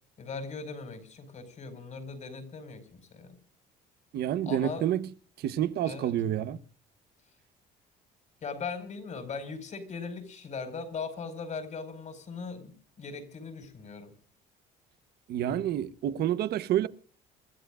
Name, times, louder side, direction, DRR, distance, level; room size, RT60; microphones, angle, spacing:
voice 1, 0.2-3.4 4.4-4.8 5.8-6.1 8.4-14.1, left 4 dB, 45° left, 5.1 m, -39 dB
voice 2, 4.1-5.0 5.4-6.6 15.3-16.9, right 11 dB, 70° right, 1.1 m, -28 dB
28.5 x 14.0 x 2.5 m
cardioid pair, 110°, 17 cm